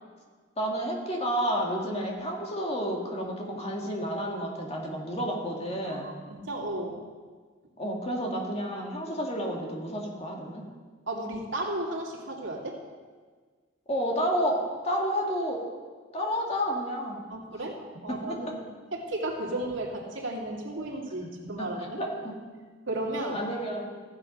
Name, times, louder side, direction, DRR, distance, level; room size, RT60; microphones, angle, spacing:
voice 1, 0.6-6.1 7.8-10.7 13.9-15.6 16.1-17.2 18.1-18.5 21.2-21.7 22.0-22.4 23.3-23.9, equal, 35° left, 0 dB, 1.9 m, -30 dB
voice 2, 5.9-7.0 11.1-12.8 17.3-17.7 18.0-18.6 18.9-22.0 22.9-23.4, right 1 dB, 75° right, -2 dB, 2.3 m, -34 dB
15.0 x 7.5 x 5.4 m, 1.5 s
head